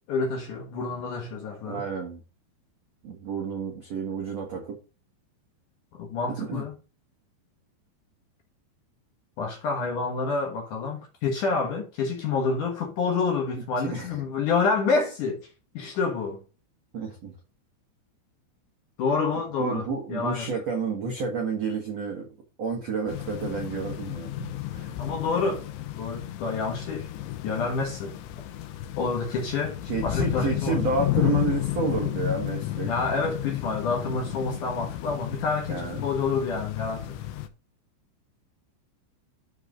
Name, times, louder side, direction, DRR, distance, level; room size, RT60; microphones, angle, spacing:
voice 1, 0.1-1.8 6.0-6.7 9.4-15.4 15.7-16.4 19.0-20.5 24.4-24.5 24.9-25.6 26.0-27.1 27.4-28.2 29.0-29.8 30.0-30.9 32.8-37.2, left 4 dB, 65° left, 2.2 m, -28 dB
voice 2, 1.7-2.2 3.0-4.8 6.4-6.7 13.8-14.1 16.9-17.3 19.6-22.3 22.6-24.3 24.7-24.9 29.8-32.9 35.7-36.0, right 4 dB, 75° right, 1.4 m, -30 dB
sound 1, 23.1-37.5, left 14 dB, 85° left, 3.1 m, -32 dB
12.0 x 4.9 x 3.7 m
omnidirectional pair, 5.3 m